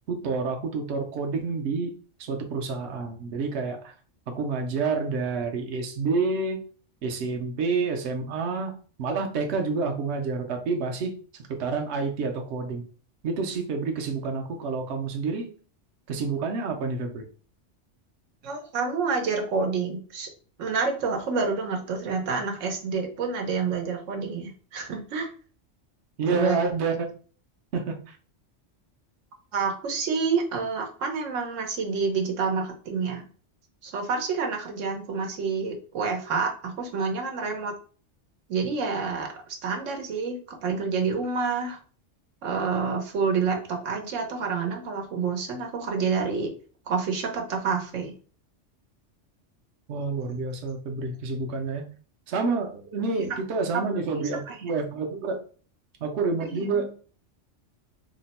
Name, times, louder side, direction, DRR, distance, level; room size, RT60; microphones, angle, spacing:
voice 1, 0.1-1.9 2.2-3.9 4.3-6.6 7.0-8.7 9.0-11.1 11.5-12.8 13.2-15.5 16.1-17.3 26.2-27.1 27.7-28.2 49.9-51.9 52.3-55.4 56.0-56.9, right 4 dB, 70° right, 3 dB, 0.9 m, -28 dB
voice 2, 18.4-20.3 20.6-25.3 26.3-26.6 29.5-33.2 33.8-37.7 38.5-39.3 39.6-41.8 42.4-46.5 46.9-48.1 53.1-53.4 53.7-53.8 54.5-54.6 56.4-56.7, right 5 dB, 90° right, 3 dB, 1.1 m, -28 dB
2.9 x 2.1 x 4.0 m, 0.41 s
omnidirectional pair, 1.2 m